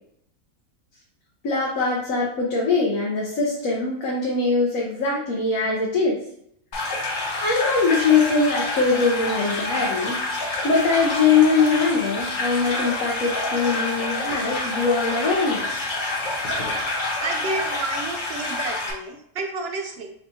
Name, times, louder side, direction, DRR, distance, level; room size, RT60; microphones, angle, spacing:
voice 1, 1.4-6.2 7.4-15.8, left 4 dB, 70° left, -4 dB, 1.2 m, -22 dB
sound 1, 6.7-18.9, left 2 dB, 45° left, 0.7 m, -28 dB
voice 2, 17.2-20.1, right 3 dB, 65° right, 3 dB, 0.6 m, -30 dB
4.1 x 3.3 x 2.7 m, 0.70 s
omnidirectional pair, 1.5 m